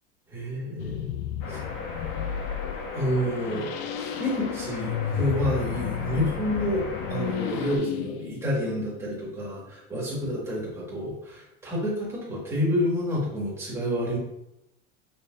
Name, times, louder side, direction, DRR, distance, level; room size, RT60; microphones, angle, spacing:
voice 1, 0.3-1.6 2.9-3.7 4.0-14.2, equal, 10° right, -6 dB, 1.9 m, -29 dB
sound 1, 0.8-9.4, left 10 dB, 75° left, 0.5 m, -33 dB
sound 2, 1.4-7.8, left 4 dB, 55° left, 1.3 m, -37 dB
6.8 x 5.2 x 2.7 m, 0.84 s
cardioid pair, 165°, 31 cm